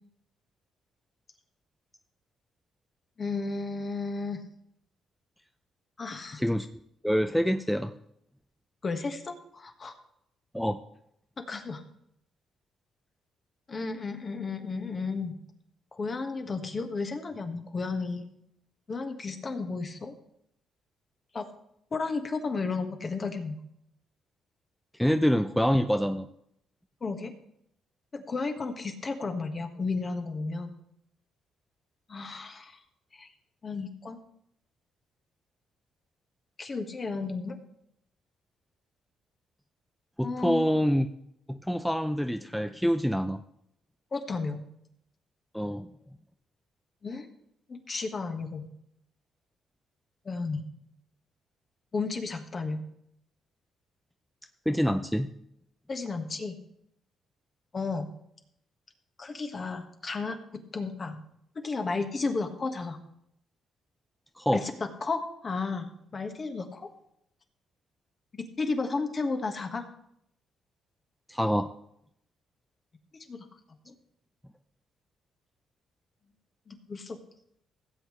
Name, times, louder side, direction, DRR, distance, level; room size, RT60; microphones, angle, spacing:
voice 1, 3.2-4.4 6.0-6.4 8.8-9.9 11.4-11.8 13.7-15.3 15.9-18.3 18.9-20.1 21.3-21.5 21.9-23.6 27.0-27.3 28.1-30.7 32.1-32.8 33.1-33.3 33.6-34.2 36.6-37.6 40.2-40.7 44.1-44.6 47.0-47.3 47.7-48.7 50.2-50.6 51.9-52.8 55.9-56.6 57.7-58.1 59.2-60.4 60.7-61.2 61.5-63.0 64.5-64.7 65.0-66.9 68.3-69.8 73.3-73.5 73.9-74.0 76.7-77.2, left 4 dB, 40° left, 5 dB, 1.6 m, -33 dB
voice 2, 6.3-6.7 7.0-7.9 10.5-10.8 25.0-26.3 40.2-41.1 41.5-43.4 45.5-45.9 54.7-55.3 64.4-64.6 71.3-71.7, equal, ahead, 8 dB, 0.5 m, -26 dB
16.5 x 8.1 x 3.3 m, 0.75 s
cardioid pair, 90°, 0 cm